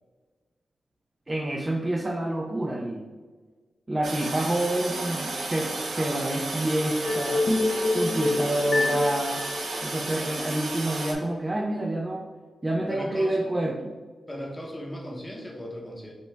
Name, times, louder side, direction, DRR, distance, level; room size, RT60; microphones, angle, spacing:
voice 1, 1.3-3.0 3.9-7.4 7.9-9.4 9.8-12.3 12.6-13.9, right 1 dB, 20° right, 0 dB, 0.4 m, -28 dB
Toilet flush, 4.0-11.1, right 2 dB, 65° right, 0.7 m, -33 dB
sound 1, 7.0-10.4, left 2 dB, 45° left, 0.6 m, -26 dB
voice 2, 12.9-13.4 14.3-16.1, equal, 15° left, -1 dB, 0.8 m, -37 dB
5.1 x 2.2 x 4.3 m, 1.3 s
wide cardioid pair, 155°, 0 cm